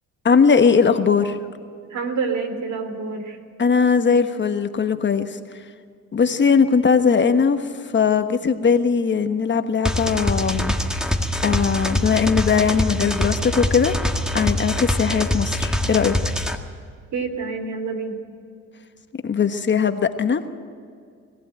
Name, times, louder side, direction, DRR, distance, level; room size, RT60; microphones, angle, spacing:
voice 1, 0.2-1.4 3.6-5.3 6.1-7.6 7.9-11.0 11.4-13.9 14.3-16.1 19.2-20.4, left 6 dB, 40° left, 8 dB, 1.3 m, -19 dB
voice 2, 1.9-3.4 17.1-18.2, right 4 dB, 70° right, 6 dB, 3.3 m, -27 dB
sound 1, 9.8-16.5, left 1 dB, ahead, 1.7 m, -24 dB
21.0 x 15.0 x 9.1 m, 2.2 s
cardioid pair, 90°, 30 cm